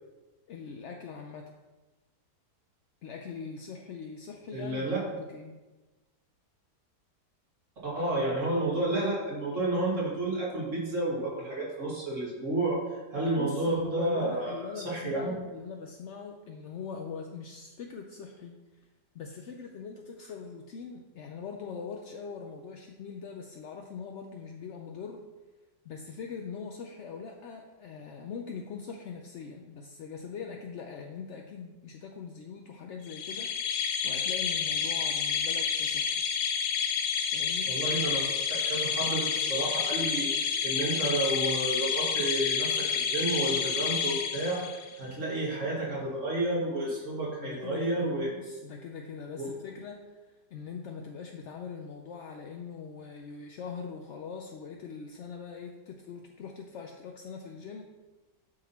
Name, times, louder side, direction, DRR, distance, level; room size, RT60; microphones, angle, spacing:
voice 1, 0.5-1.5 3.0-5.6 13.4-18.9 19.1-25.2 25.8-36.2 37.3-37.7 47.3-48.1 48.4-57.8, left 6 dB, 70° left, 3 dB, 0.7 m, -42 dB
voice 2, 4.5-5.0 7.8-15.3 37.7-48.3 49.4-49.5, right 2 dB, 45° right, -5 dB, 2.7 m, -31 dB
sound 1, 33.1-44.9, left 7 dB, 90° left, 1.3 m, -29 dB
11.0 x 4.0 x 4.2 m, 1.2 s
omnidirectional pair, 1.8 m